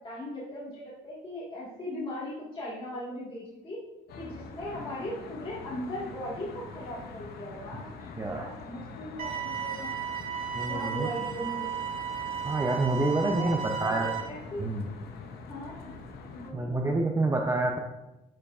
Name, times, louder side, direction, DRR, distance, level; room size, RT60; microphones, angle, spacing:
voice 1, 0.0-3.8 4.2-7.9 8.3-9.9 10.7-11.7 13.2-14.7 15.5-16.0 16.3-16.9, left 1 dB, 30° left, -6 dB, 1.8 m, -38 dB
Traffic noise roadway noise, 4.1-16.5, left 4 dB, 70° left, 0.9 m, -44 dB
sound 1, 9.2-14.2, right 8 dB, 55° right, 1.2 m, -34 dB
voice 2, 10.6-11.1 12.4-14.1 14.6-14.9 16.5-17.8, right 2 dB, 15° right, 1 dB, 0.6 m, -28 dB
12.0 x 4.5 x 2.5 m, 0.94 s
cardioid pair, 110°, 17 cm